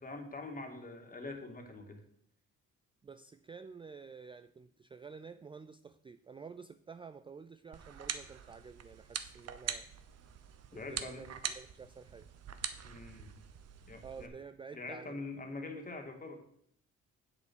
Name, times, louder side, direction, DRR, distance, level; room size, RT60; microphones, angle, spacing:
voice 1, 0.0-2.0 10.7-11.2 12.8-13.3 13.9-14.3 14.7-16.4, left 3 dB, 30° left, 4 dB, 2.1 m, -44 dB
voice 2, 3.0-9.9 10.7-12.3 14.0-15.5, right 5 dB, 15° right, 12 dB, 0.3 m, -50 dB
sound 1, 7.7-14.3, right 8 dB, 55° right, 0.9 m, -43 dB
8.0 x 7.0 x 6.1 m, 0.68 s
cardioid pair, 90°, 30 cm